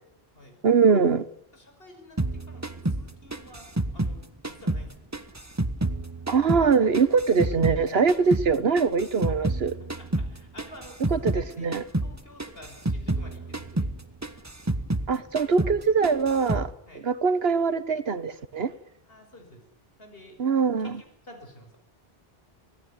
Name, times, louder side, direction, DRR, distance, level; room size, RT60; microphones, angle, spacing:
voice 1, 0.6-1.2 6.3-9.7 11.1-11.8 15.1-16.7 17.0-18.7 20.4-21.0, right 5 dB, 75° right, 14 dB, 1.4 m, -22 dB
voice 2, 1.5-5.0 9.5-9.6 10.0-11.7 12.0-13.9 16.9-17.1 19.0-19.6 20.0-20.4 20.8-21.8, left 1 dB, 70° left, 5 dB, 5.9 m, -50 dB
sound 1, 2.2-4.9 5.1-7.8 8.1-11.5 11.7-12.1 12.4-15.1 15.4-15.8 16.0-16.7, right 2 dB, 15° right, 1.2 m, -29 dB
25.5 x 18.0 x 9.7 m, 0.73 s
omnidirectional pair, 1.0 m